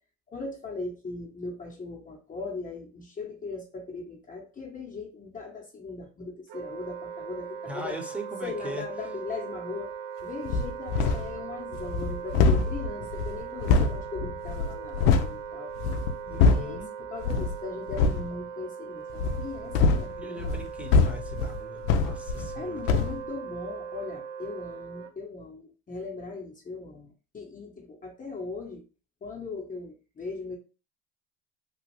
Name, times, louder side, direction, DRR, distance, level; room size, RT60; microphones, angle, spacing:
voice 1, 0.3-8.0 8.4-15.7 16.5-20.5 22.5-28.8 29.2-30.6, left 4 dB, 25° left, 0 dB, 0.8 m, -39 dB
Wind instrument woodwind instrument, 6.5-25.1, right 7 dB, 60° right, 0.6 m, -39 dB
voice 2, 7.6-8.8 16.2-16.9 20.1-22.8, right 1 dB, 5° right, 2 dB, 0.9 m, -40 dB
sound 1, 10.5-11.4 11.7-15.4 15.8-16.8 17.2-17.6 17.9-18.3 19.1-22.6 22.9-23.2, left 4 dB, 75° left, 0.5 m, -24 dB
3.1 x 2.4 x 3.0 m, 0.34 s
supercardioid pair, 85°, 35 cm